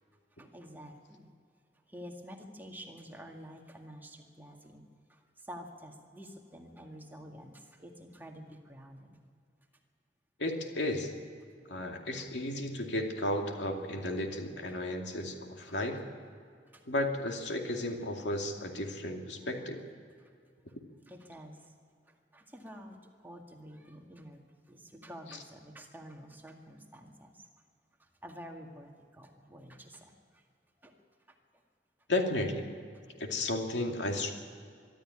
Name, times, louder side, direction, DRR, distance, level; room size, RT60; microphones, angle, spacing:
voice 1, 0.4-1.3 1.9-9.2 12.1-12.2 14.7-14.8 15.7-15.8 16.7-16.9 20.2-20.3 21.1-21.7 22.1-27.5 28.0-30.5 30.8-30.9 31.3-31.4, equal, 10° right, 1 dB, 2.0 m, -49 dB
voice 2, 10.4-11.1 11.7-16.0 16.9-19.8 32.1-32.7 33.2-34.3, left 1 dB, 85° left, 3 dB, 2.4 m, -33 dB
23.5 x 13.0 x 9.9 m, 2.2 s
head